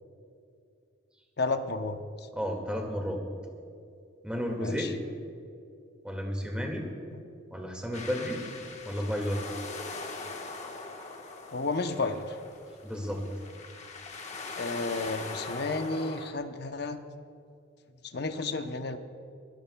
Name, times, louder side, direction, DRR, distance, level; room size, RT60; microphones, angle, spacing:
voice 1, 1.4-2.0 4.5-4.9 11.5-12.3 14.6-17.0 18.1-19.0, left 3 dB, 55° left, 7 dB, 0.8 m, -32 dB
voice 2, 2.4-3.2 4.2-4.9 6.0-6.9 7.5-8.4 8.9-9.4 12.8-13.3, equal, 5° right, 1 dB, 2.0 m, -32 dB
sound 1, 7.9-16.3, left 3 dB, 35° left, 1.3 m, -41 dB
24.5 x 17.5 x 2.3 m, 2.5 s
head